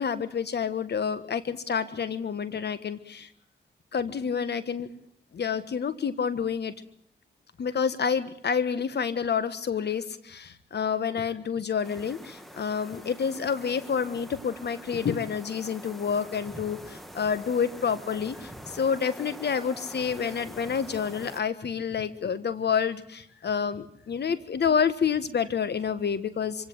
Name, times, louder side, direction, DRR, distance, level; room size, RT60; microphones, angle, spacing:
voice 1, 0.0-3.3 3.9-4.9 5.3-6.7 7.6-26.7, left 6 dB, 70° left, 13 dB, 1.5 m, -28 dB
sound 1, 11.8-21.4, equal, ahead, 2.2 m, -45 dB
25.5 x 17.0 x 7.8 m, 0.67 s
cardioid pair, 60°, 18 cm